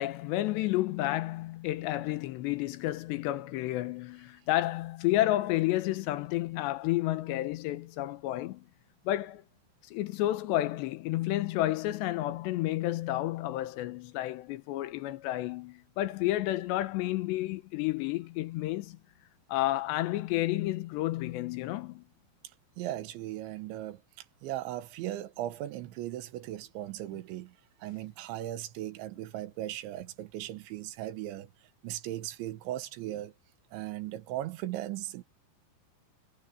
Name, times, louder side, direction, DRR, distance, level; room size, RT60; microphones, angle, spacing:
voice 1, 0.0-8.7 9.1-9.4 9.9-19.0 19.5-22.0, left 16 dB, 80° left, 3.0 m, -31 dB
voice 2, 22.8-27.6 27.8-31.5 31.8-33.3 33.7-35.2, right 14 dB, 85° right, 3.6 m, -38 dB
omnidirectional pair, 5.2 m